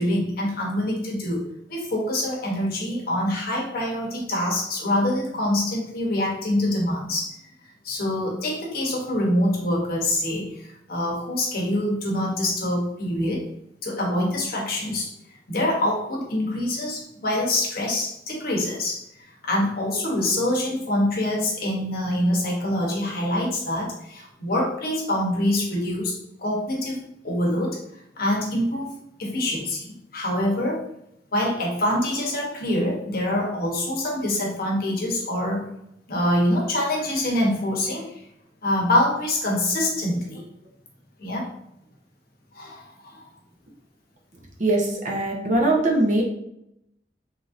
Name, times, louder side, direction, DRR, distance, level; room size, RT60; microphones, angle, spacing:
voice 1, 0.0-1.4 1.7-7.3 7.8-13.4 13.8-15.1 15.5-27.8 28.2-28.9 29.2-29.9 30.1-30.8 31.3-35.7 36.1-38.2 38.6-40.4 41.2-41.5 42.5-43.2, left 1 dB, 55° left, -2 dB, 0.8 m, -25 dB
voice 2, 44.6-46.2, right 2 dB, 45° right, 0 dB, 0.5 m, -21 dB
3.2 x 2.5 x 2.4 m, 0.78 s
head